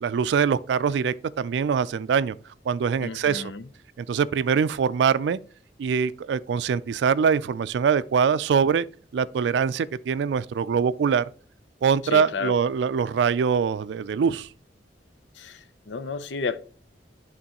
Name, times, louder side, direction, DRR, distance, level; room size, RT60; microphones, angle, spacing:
voice 1, 0.0-2.4 2.7-3.5 4.0-5.4 5.8-8.9 9.1-11.2 11.8-14.5, right 6 dB, 70° right, 0.3 m, -23 dB
voice 2, 3.0-3.7 12.0-12.5 15.4-16.6, left 4 dB, 85° left, 0.5 m, -32 dB
11.0 x 3.8 x 2.9 m
head